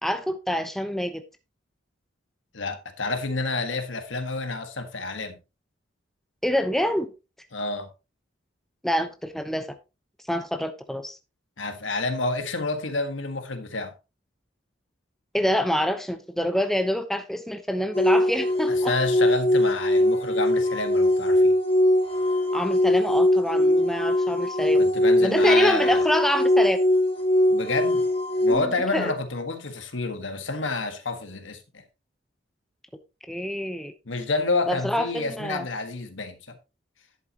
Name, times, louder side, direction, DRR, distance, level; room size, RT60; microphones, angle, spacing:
voice 1, 0.0-1.2 6.4-7.1 8.8-9.7 10.3-11.2 15.3-18.9 22.5-24.8 25.2-26.8 28.5-29.2 33.3-33.9 34.7-35.6, equal, ahead, 0.9 m, -26 dB
voice 2, 2.5-5.4 7.5-7.9 11.6-13.9 18.7-21.6 24.7-26.0 27.5-28.0 28.4-31.8 34.0-36.6, left 3 dB, 90° left, 1.6 m, -29 dB
sound 1, 17.9-28.5, left 1 dB, 30° left, 3.5 m, -21 dB
11.0 x 8.2 x 2.9 m
head